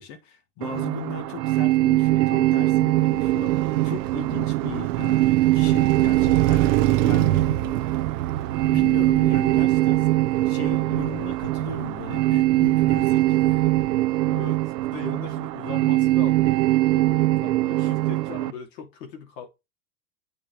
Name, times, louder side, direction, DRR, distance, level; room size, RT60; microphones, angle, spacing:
voice 1, 0.0-7.5 8.3-10.1 10.4-13.7, left 7 dB, 45° left, 1.8 m, -37 dB
sound 1, 0.6-18.5, right 17 dB, 90° right, 0.6 m, -22 dB
Car passing by, 2.6-14.9, right 15 dB, 50° right, 0.7 m, -29 dB
voice 2, 7.5-7.8 14.3-19.6, left 6 dB, 80° left, 3.0 m, -40 dB
8.6 x 4.3 x 3.3 m
supercardioid pair, 140°, 49 cm